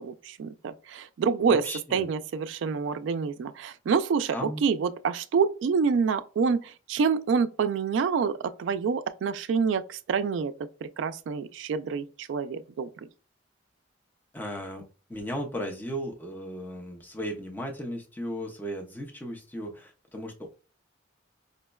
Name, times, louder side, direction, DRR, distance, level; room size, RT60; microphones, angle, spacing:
voice 1, 0.0-1.6 1.9-12.9, right 5 dB, 75° right, 0.3 m, -27 dB
voice 2, 1.4-2.1 4.3-4.6 14.3-14.8 15.1-20.5, equal, 10° left, 0.5 m, -36 dB
5.0 x 2.1 x 2.2 m
head